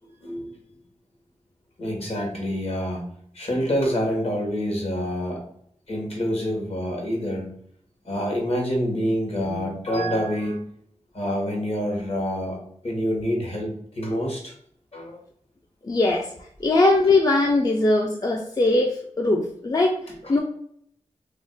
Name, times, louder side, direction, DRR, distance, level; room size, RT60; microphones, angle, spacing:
voice 1, 0.2-0.6 1.8-3.1 3.3-5.4 5.9-7.5 8.0-10.6 11.1-14.5 14.9-15.2 20.1-20.4, equal, 55° left, 1 dB, 1.0 m, -27 dB
voice 2, 15.8-16.3 16.6-20.0 20.3-20.4, left 2 dB, 30° left, 1 dB, 0.4 m, -20 dB
2.4 x 2.1 x 3.8 m, 0.66 s
wide cardioid pair, 60°, 12 cm